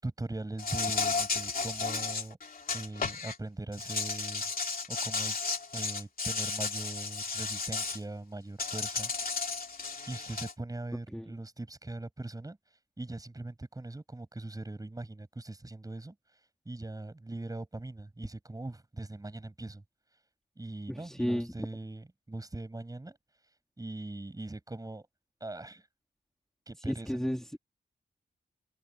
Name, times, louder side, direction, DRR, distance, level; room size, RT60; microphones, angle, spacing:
voice 1, 0.0-2.4 2.7-4.5 4.9-9.4 10.1-12.6 13.0-16.2 16.7-19.8 20.6-23.2 23.8-25.1 25.4-25.9 26.7-27.2, right 2 dB, 20° right, 7.6 m, -41 dB
Insect, 0.6-3.3 3.7-8.0 8.6-10.5, left 4 dB, 55° left, 2.9 m, -33 dB
voice 2, 20.9-21.5 26.8-27.6, equal, 5° left, 2.7 m, -33 dB
open air
wide cardioid pair, 140°, 18 cm